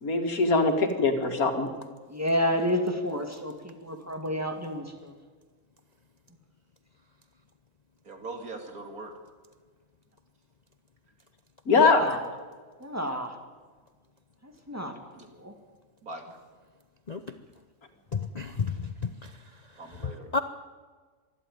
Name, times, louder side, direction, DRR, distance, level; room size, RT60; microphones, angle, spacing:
voice 1, 0.0-1.7 11.7-12.0, left 4 dB, 85° left, 5 dB, 2.6 m, -22 dB
voice 2, 2.1-5.1 12.0-12.2 12.8-13.3 14.7-14.9 15.4-15.5, equal, 10° right, 4 dB, 2.3 m, -30 dB
voice 3, 8.0-9.2 13.1-13.2 15.1-15.2 16.0-16.3 19.8-20.3, right 2 dB, 85° right, 4 dB, 3.0 m, -41 dB
voice 4, 18.1-19.3 20.0-20.4, left 5 dB, 40° left, 9 dB, 0.7 m, -31 dB
25.5 x 11.5 x 9.3 m, 1.5 s
omnidirectional pair, 1.5 m